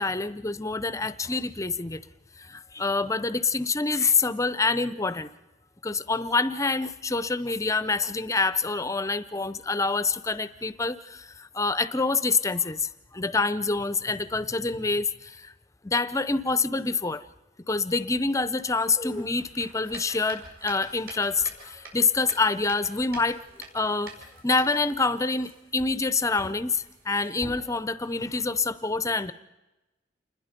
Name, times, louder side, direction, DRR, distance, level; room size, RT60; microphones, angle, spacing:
voice 1, 0.0-2.0 2.4-5.3 5.8-15.5 15.8-17.2 17.7-23.4 23.7-24.1 24.4-29.3, left 3 dB, 15° left, 15 dB, 0.7 m, -26 dB
sound 1, 18.5-27.8, right 2 dB, 55° right, 5.7 m, -47 dB
28.0 x 21.0 x 5.2 m, 1.0 s
head